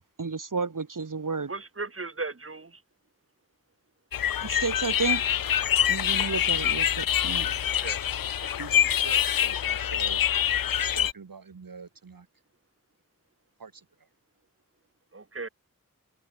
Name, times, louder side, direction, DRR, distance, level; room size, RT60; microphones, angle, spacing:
voice 1, 0.2-1.5 4.4-5.4 5.9-7.5, right 4 dB, 65° right, 3.1 m, -31 dB
voice 2, 1.5-2.8 7.6-8.0 15.1-15.5, right 3 dB, 40° right, 2.2 m, -36 dB
sound 1, 4.1-11.1, left 10 dB, 80° left, 0.5 m, -25 dB
voice 3, 8.4-10.2 10.8-12.3 13.6-14.1, right 5 dB, 90° right, 2.9 m, -45 dB
wide cardioid pair, 50°, 34 cm